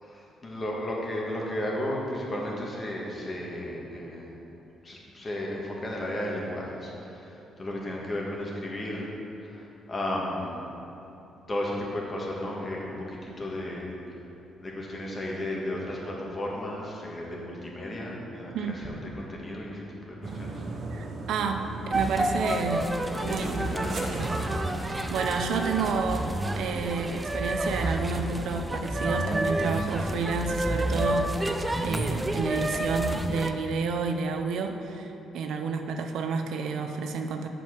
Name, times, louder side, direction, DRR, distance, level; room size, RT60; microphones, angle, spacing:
voice 1, 0.0-4.3 4.8-9.1 9.4-10.6 11.5-13.9 14.6-18.5 18.8-20.6 23.3-24.6, left 1 dB, 30° left, -3 dB, 1.8 m, -34 dB
voice 2, 18.5-18.8 20.9-22.9 23.2-23.7 24.8-37.5, right 5 dB, 75° right, 5 dB, 0.6 m, -30 dB
sound 1, 20.2-26.3, right 3 dB, 60° right, 1.0 m, -37 dB
sound 2, 21.9-33.5, right 1 dB, 15° right, 0.5 m, -29 dB
7.5 x 5.4 x 5.9 m, 3.0 s
cardioid pair, 90°, 0 cm